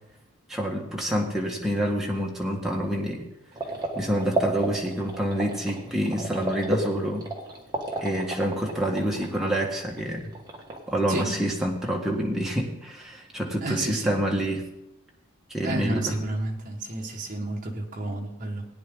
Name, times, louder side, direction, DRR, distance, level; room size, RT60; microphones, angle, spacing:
voice 1, 0.5-3.2 3.9-7.3 8.0-10.3 10.9-14.6 15.5-16.2, equal, ahead, -2 dB, 1.6 m, -27 dB
sound 1, 3.5-10.0 10.2-10.9, right 2 dB, 20° right, 1.8 m, -32 dB
voice 2, 13.6-14.2 15.6-18.7, right 2 dB, 35° right, 0 dB, 1.6 m, -31 dB
17.5 x 9.5 x 3.9 m, 0.89 s
head